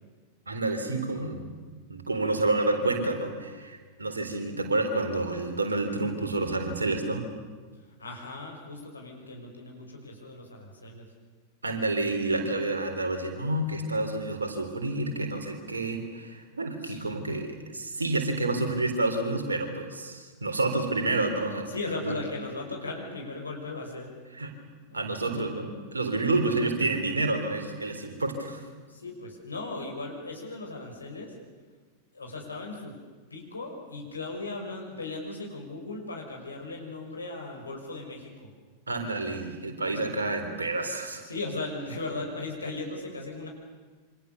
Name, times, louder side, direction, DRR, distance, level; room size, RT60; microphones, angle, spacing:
voice 1, 0.5-1.6 1.9-7.2 11.6-21.7 22.0-22.2 24.4-24.5 24.9-28.6 38.9-41.3, right 2 dB, 75° right, 5 dB, 3.8 m, -29 dB
voice 2, 8.0-11.1 16.8-17.1 21.7-24.1 24.9-25.5 28.9-31.4 32.1-32.9 33.3-38.5 41.2-43.5, left 2 dB, 75° left, 1 dB, 6.0 m, -37 dB
27.5 x 25.5 x 7.0 m, 1.4 s
figure-of-eight pair, 90°, 0 cm